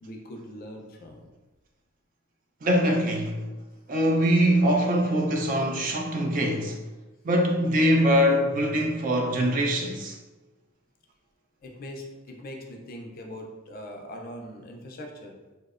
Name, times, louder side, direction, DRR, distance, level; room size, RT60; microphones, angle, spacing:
voice 1, 0.0-1.3 11.6-15.5, equal, 45° left, 0.3 m, -41 dB
voice 2, 2.6-3.4 3.9-6.8 7.2-10.2, equal, 40° right, 0.3 m, -23 dB
2.7 x 2.0 x 2.3 m
head